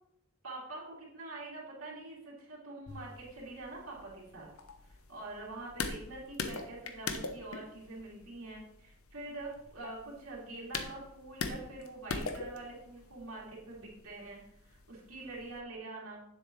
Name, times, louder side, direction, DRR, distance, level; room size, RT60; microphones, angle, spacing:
voice 1, 0.4-4.5 5.1-16.2, right 2 dB, 70° right, -6 dB, 3.0 m, -45 dB
sound 1, 2.9-15.6, left 4 dB, 75° left, 0.9 m, -43 dB
9.7 x 7.5 x 3.2 m, 0.76 s
head